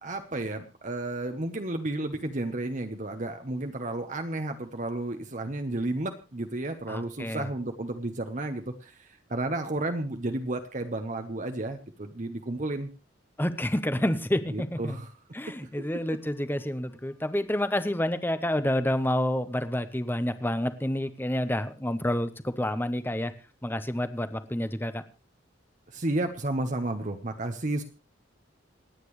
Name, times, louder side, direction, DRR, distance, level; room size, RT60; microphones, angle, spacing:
voice 1, 0.0-12.9 14.5-15.1 25.9-27.8, right 2 dB, 40° right, 6 dB, 1.0 m, -32 dB
voice 2, 6.9-7.5 13.4-15.0 15.3-23.3 23.6-25.0, left 1 dB, 10° left, 11 dB, 0.9 m, -29 dB
27.5 x 9.2 x 3.2 m, 0.32 s
head